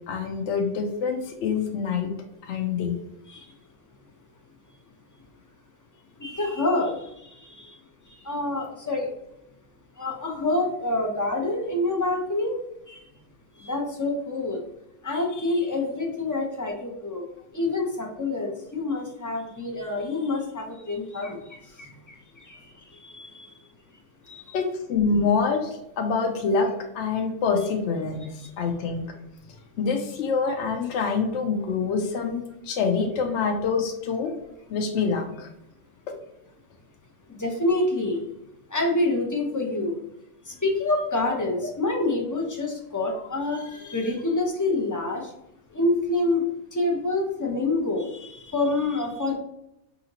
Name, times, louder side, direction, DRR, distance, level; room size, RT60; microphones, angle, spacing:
voice 1, 0.1-2.1 2.4-3.0 24.5-28.3 28.6-29.0 29.8-34.3 34.7-35.5, left 5 dB, 65° left, 3 dB, 0.8 m, -26 dB
voice 2, 6.2-7.8 8.2-9.1 10.0-12.5 12.9-13.0 13.6-14.6 15.0-17.2 17.5-22.6 23.0-23.5 24.3-24.5 37.3-38.2 38.7-40.0 40.5-45.3 45.7-46.4 46.7-49.4, left 2 dB, 30° left, 0 dB, 0.3 m, -27 dB
4.8 x 2.6 x 2.8 m, 0.84 s
omnidirectional pair, 1.4 m